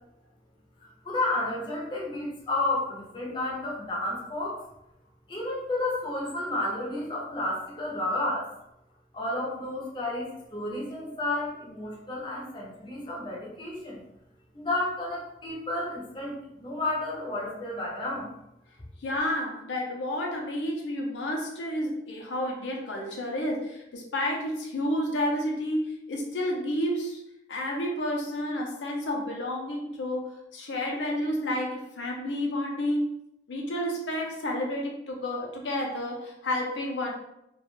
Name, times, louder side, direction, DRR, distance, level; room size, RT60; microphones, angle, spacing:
voice 1, 1.0-4.6 5.3-8.5 9.1-14.0 14.5-18.3, left 2 dB, 25° left, -4 dB, 0.6 m, -31 dB
voice 2, 19.0-27.2 27.5-33.1 33.5-37.1, left 1 dB, 75° left, -1 dB, 0.5 m, -30 dB
2.3 x 2.2 x 3.0 m, 0.82 s
head